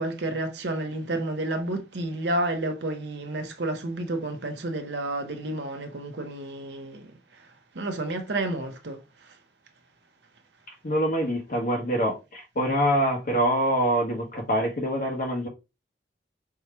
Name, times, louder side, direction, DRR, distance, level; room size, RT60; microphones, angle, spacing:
voice 1, 0.0-7.5 7.7-9.4, right 2 dB, 70° right, 0.9 m, -31 dB
voice 2, 10.8-15.5, equal, 55° left, 1.3 m, -25 dB
4.6 x 2.3 x 4.3 m
head